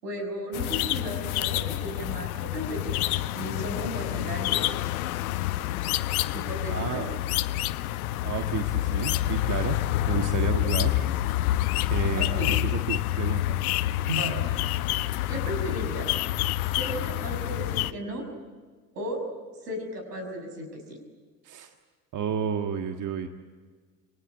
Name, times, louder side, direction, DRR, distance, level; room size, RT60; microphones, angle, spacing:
voice 1, 0.0-4.6 6.3-7.0 12.2-12.5 14.0-14.5 15.3-16.1 16.7-18.2 18.9-19.3 19.6-21.0, equal, 75° right, 5 dB, 6.2 m, -35 dB
sound 1, 0.5-17.9, left 15 dB, 60° left, 0.9 m, -28 dB
voice 2, 6.7-7.1 8.2-9.8 10.1-11.1 11.9-13.7 21.4-21.7 22.1-23.3, right 7 dB, 40° right, 6 dB, 1.7 m, -31 dB
28.5 x 22.5 x 8.6 m, 1.5 s
figure-of-eight pair, 65°, 49 cm